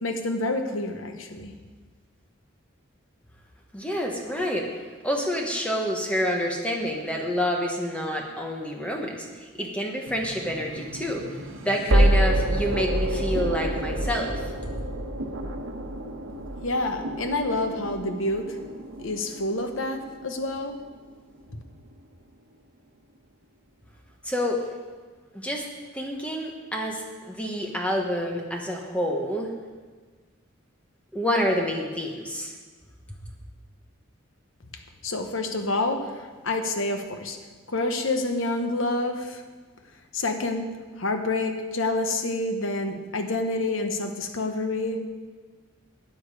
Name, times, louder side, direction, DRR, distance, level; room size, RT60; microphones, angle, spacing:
voice 1, 0.0-1.5 16.6-18.6 19.0-20.8 35.0-37.4 37.7-39.4 40.1-45.0, left 2 dB, 75° left, 6 dB, 1.2 m, -28 dB
voice 2, 3.7-4.7 5.0-11.2 11.6-14.4 24.2-24.6 25.3-25.6 25.9-29.5 31.1-32.5, equal, 5° left, 0 dB, 1.2 m, -28 dB
sound 1, 10.1-21.1, right 1 dB, 75° right, 1.2 m, -28 dB
13.0 x 9.1 x 4.9 m, 1.4 s
head